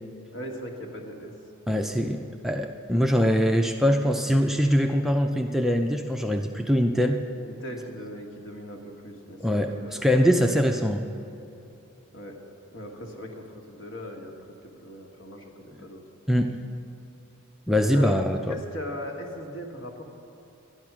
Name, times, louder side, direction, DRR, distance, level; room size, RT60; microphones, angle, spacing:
voice 1, 0.3-1.3 1.7-2.0 7.4-10.9 12.1-12.3 12.7-16.0 17.9-18.1 18.5-20.0, equal, 60° left, 1 dB, 1.6 m, -39 dB
voice 2, 1.7-7.2 9.4-9.7 10.0-11.0 16.3-16.6 17.7-18.5, equal, ahead, 3 dB, 0.4 m, -23 dB
12.0 x 10.5 x 6.1 m, 2.9 s
head